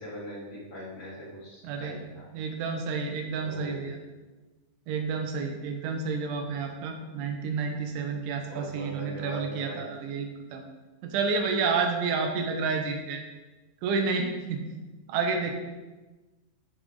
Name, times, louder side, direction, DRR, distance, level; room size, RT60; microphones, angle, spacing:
voice 1, 0.0-2.2 3.4-3.8 8.5-9.8, equal, 20° left, -8 dB, 3.1 m, -40 dB
voice 2, 1.6-2.0 2.3-4.0 4.9-10.7 11.0-13.2 13.8-14.6 15.1-15.5, right 4 dB, 75° right, 3 dB, 3.5 m, -30 dB
13.0 x 7.2 x 3.9 m, 1.2 s
omnidirectional pair, 5.7 m